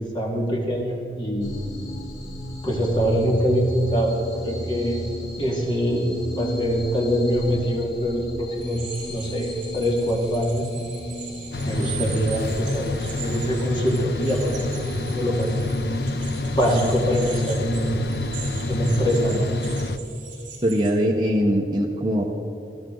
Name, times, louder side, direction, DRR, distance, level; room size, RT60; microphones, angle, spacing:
voice 1, 0.0-1.6 2.6-4.1 4.4-5.0 5.4-8.8 9.1-10.6 11.6-14.7 15.1-15.5 16.5-18.0 18.7-19.5, equal, 25° left, -1 dB, 2.2 m, -24 dB
sound 1, 1.4-19.9, equal, 80° left, 2.4 m, -36 dB
sound 2, 8.6-20.9, right 7 dB, 45° right, 4.2 m, -41 dB
sound 3, 11.5-20.0, left 2 dB, 60° left, 0.7 m, -28 dB
voice 2, 20.6-22.2, equal, 25° right, -1 dB, 1.0 m, -21 dB
21.5 x 13.0 x 3.9 m, 2.9 s
head